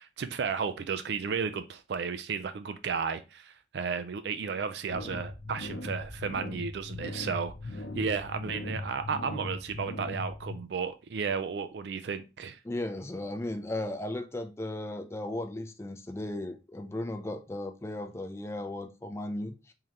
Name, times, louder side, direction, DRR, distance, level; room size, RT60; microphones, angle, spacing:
voice 1, 0.0-12.6, right 6 dB, 65° right, 0.4 m, -33 dB
sound 1, 4.9-10.6, left 2 dB, 85° left, 0.6 m, -39 dB
voice 2, 12.6-19.7, left 1 dB, 15° left, 0.4 m, -36 dB
3.7 x 2.8 x 3.1 m
head